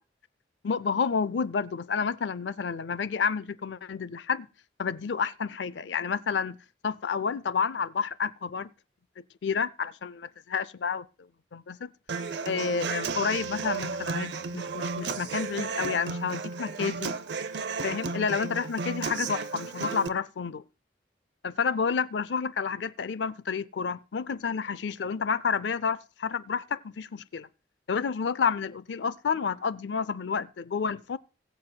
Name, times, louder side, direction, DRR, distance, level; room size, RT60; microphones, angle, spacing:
voice 1, 0.6-4.5 4.8-6.6 6.8-8.7 9.2-11.1 11.5-11.9 12.4-17.1 17.8-20.6 21.4-27.5 27.9-31.2, left 6 dB, 80° left, 0.5 m, -30 dB
Human voice / Acoustic guitar, 12.1-20.1, right 4 dB, 70° right, 0.6 m, -33 dB
20.5 x 7.8 x 2.2 m
head